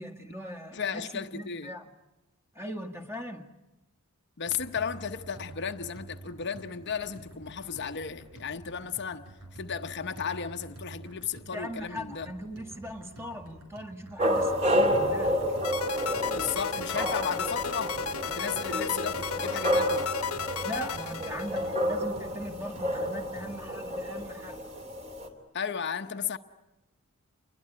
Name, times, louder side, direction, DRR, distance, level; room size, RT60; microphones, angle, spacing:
voice 1, 0.0-1.0 1.3-1.9 2.5-3.5 11.5-15.4 20.6-24.6, equal, 10° right, 1.9 m, -40 dB
voice 2, 0.7-1.7 4.4-12.3 16.4-18.0 18.3-20.1 25.5-26.4, left 7 dB, 50° left, 0.9 m, -34 dB
sound 1, 4.5-23.7, right 2 dB, 90° right, 7.4 m, -48 dB
sound 2, 14.2-25.3, equal, 30° right, 2.8 m, -30 dB
sound 3, 15.6-21.9, left 6 dB, 75° left, 1.1 m, -34 dB
28.5 x 21.5 x 9.9 m
head